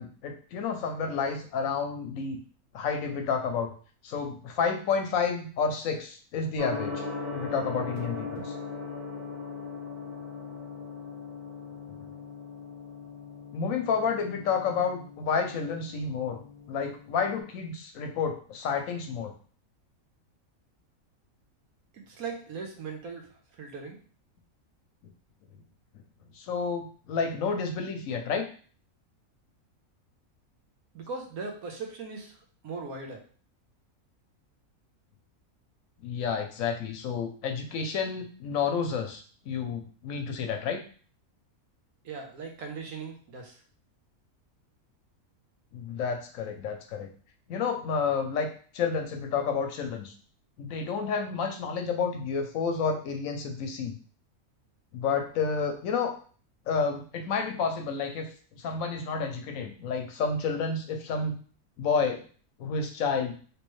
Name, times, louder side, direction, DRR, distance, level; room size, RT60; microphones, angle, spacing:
voice 1, 0.0-2.4 2.7-3.7 4.0-7.0 7.3-8.5 13.5-16.4 16.7-19.3 26.3-28.5 36.0-40.8 45.7-47.1 47.5-50.1 50.6-54.0 54.9-56.1 56.7-61.3 61.8-62.3 62.6-63.3, left 5 dB, 70° left, 5 dB, 1.0 m, -30 dB
Gong, 6.6-17.4, left 4 dB, 10° right, 1.3 m, -39 dB
voice 2, 21.9-23.3 23.6-24.0 30.9-32.3 32.6-33.2 42.0-43.6, right 4 dB, 80° right, 3 dB, 1.3 m, -39 dB
3.2 x 3.0 x 3.1 m, 0.43 s
omnidirectional pair, 1.5 m